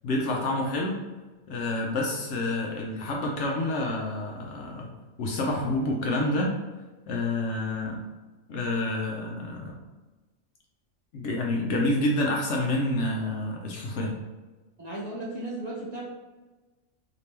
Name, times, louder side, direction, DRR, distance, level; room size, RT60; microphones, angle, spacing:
voice 1, 0.0-1.0 1.5-4.9 5.2-6.5 7.1-8.0 8.5-9.7 11.1-14.1, left 1 dB, 65° left, -1 dB, 0.8 m, -28 dB
voice 2, 14.8-16.0, right 2 dB, 35° right, -7 dB, 0.8 m, -35 dB
3.3 x 2.9 x 2.8 m, 1.2 s
omnidirectional pair, 1.4 m